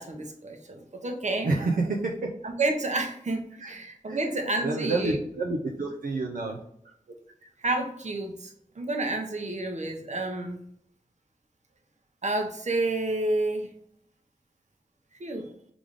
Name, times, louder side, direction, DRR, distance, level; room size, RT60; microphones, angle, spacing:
voice 1, 0.0-1.5 2.4-5.2 7.6-10.6 12.2-13.7 15.2-15.5, right 2 dB, 55° right, 3 dB, 0.9 m, -30 dB
voice 2, 1.4-2.3 3.6-3.8 4.1-6.6 7.4-7.5, right 3 dB, 85° right, -1 dB, 0.6 m, -29 dB
3.5 x 3.4 x 3.6 m, 0.70 s
cardioid pair, 50°, 14 cm